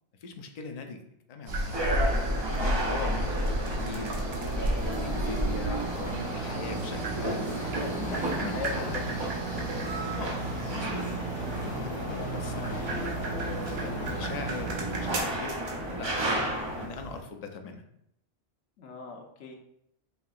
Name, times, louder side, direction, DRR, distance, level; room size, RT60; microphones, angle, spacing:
voice 1, 0.2-1.0 1.3-1.9 2.6-7.5 7.9-9.2 10.1-11.1 11.5-13.1 13.5-16.1 16.7-17.8, left 4 dB, 55° left, 5 dB, 0.4 m, -40 dB
sound 1, 1.5-17.2, right 1 dB, 65° right, 1.0 m, -34 dB
sound 2, 1.7-16.9, right 1 dB, 35° right, 0.4 m, -34 dB
voice 2, 2.5-2.9 7.7-9.1 18.8-19.5, left 4 dB, 90° left, 1 dB, 1.0 m, -40 dB
sound 3, 3.2-15.2, right 3 dB, 25° left, 1.5 m, -36 dB
5.4 x 2.7 x 2.4 m, 0.76 s
omnidirectional pair, 1.2 m